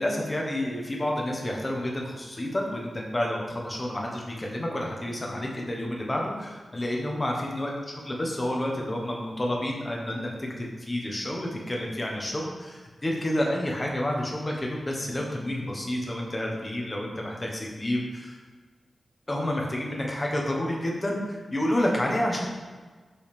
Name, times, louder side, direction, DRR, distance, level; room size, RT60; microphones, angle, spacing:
voice 1, 0.0-7.7 8.0-18.4 19.3-22.5, left 1 dB, 20° left, -1 dB, 1.1 m, -29 dB
6.3 x 5.9 x 3.4 m, 1.4 s
wide cardioid pair, 165°, 0 cm